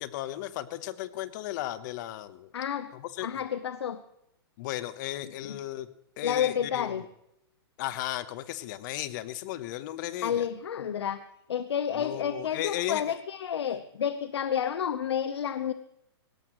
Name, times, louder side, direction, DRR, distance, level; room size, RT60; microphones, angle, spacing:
voice 1, 0.0-2.5 2.9-3.3 4.6-5.9 6.2-7.1 7.8-10.4 12.0-13.0, left 14 dB, 45° left, 14 dB, 1.1 m, -35 dB
voice 2, 2.5-2.9 3.2-4.0 5.2-5.6 6.2-7.0 10.2-11.2 11.5-15.7, left 8 dB, 80° left, 12 dB, 0.9 m, -30 dB
20.0 x 17.0 x 3.1 m, 0.82 s
hypercardioid pair, 135°, 14 cm